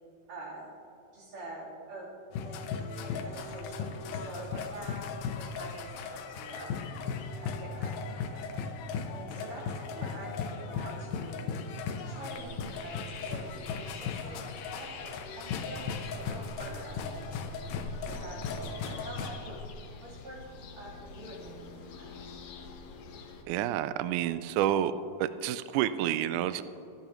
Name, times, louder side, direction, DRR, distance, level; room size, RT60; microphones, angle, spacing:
voice 1, 0.3-0.7 1.1-2.1 2.4-2.6 2.9-5.1 5.3-6.8 7.4-8.5 9.1-11.5 12.0-13.4 13.7-14.4 14.8-17.3 18.0-19.6 20.0-20.4 20.8-22.2, right 1 dB, 65° right, -7 dB, 4.9 m, -46 dB
sound 1, 2.3-19.3, left 5 dB, 85° left, 2.6 m, -37 dB
sound 2, 12.3-23.4, left 4 dB, 65° left, 1.7 m, -45 dB
voice 2, 23.5-24.9 25.2-26.6, right 11 dB, 85° right, 13 dB, 1.8 m, -29 dB
25.0 x 10.5 x 3.0 m, 2.8 s
omnidirectional pair, 4.1 m